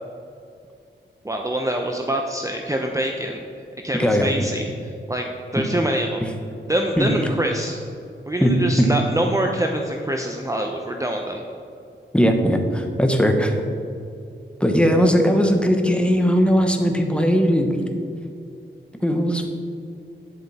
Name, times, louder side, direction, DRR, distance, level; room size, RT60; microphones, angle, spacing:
voice 1, 1.2-4.6 5.1-6.2 6.7-7.8 8.3-11.4, right 1 dB, 15° right, 2 dB, 0.7 m, -25 dB
voice 2, 12.1-13.6 14.6-17.8 19.0-19.5, equal, 5° left, 3 dB, 1.2 m, -19 dB
10.0 x 7.7 x 4.3 m, 2.5 s
cardioid pair, 60°, 20 cm